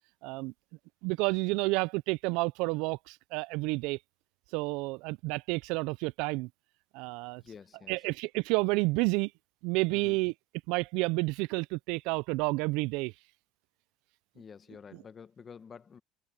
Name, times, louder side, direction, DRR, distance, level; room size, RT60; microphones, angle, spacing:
voice 1, 0.2-0.5 1.0-4.0 4.5-6.5 6.9-7.4 7.9-9.3 9.6-10.3 10.7-13.1, right 25 dB, 75° right, 0.3 m, -30 dB
voice 2, 7.4-8.0 9.9-10.2 14.4-16.0, left 6 dB, 25° left, 1.1 m, -49 dB
cardioid pair, 145°, 0 cm